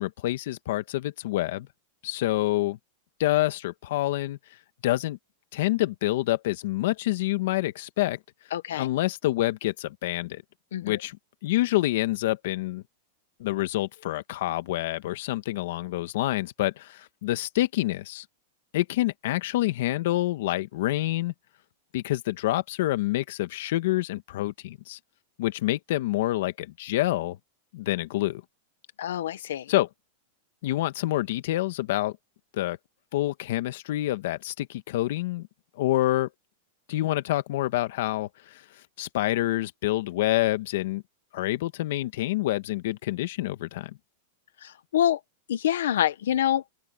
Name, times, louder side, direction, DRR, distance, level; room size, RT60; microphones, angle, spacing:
voice 1, 0.0-1.7 2.0-2.8 3.2-4.4 4.8-5.2 5.5-8.2 8.7-10.4 10.8-11.2 11.4-12.8 13.4-18.2 18.7-21.3 21.9-25.0 25.4-27.4 27.7-28.4 29.7-29.9 30.6-32.1 32.5-32.8 33.1-35.5 35.8-36.3 36.9-38.6 39.0-41.0 41.3-44.0, left 16 dB, 60° left, 1.4 m, -27 dB
voice 2, 8.5-8.9 10.7-11.0 29.0-29.7 44.6-45.2 45.5-46.6, left 11 dB, 85° left, 0.9 m, -26 dB
open air
supercardioid pair, 160°, 0 cm